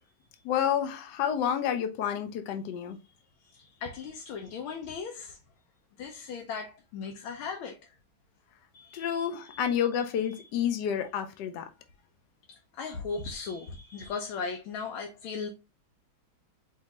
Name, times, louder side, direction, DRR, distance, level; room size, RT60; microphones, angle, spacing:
voice 1, 0.4-3.0 8.9-11.7, left 9 dB, 70° left, 1.2 m, -29 dB
voice 2, 3.4-5.4 6.0-7.9 8.7-9.9 10.3-10.4 12.5-15.5, left 5 dB, 90° left, 1.5 m, -38 dB
4.6 x 3.4 x 2.9 m
omnidirectional pair, 2.2 m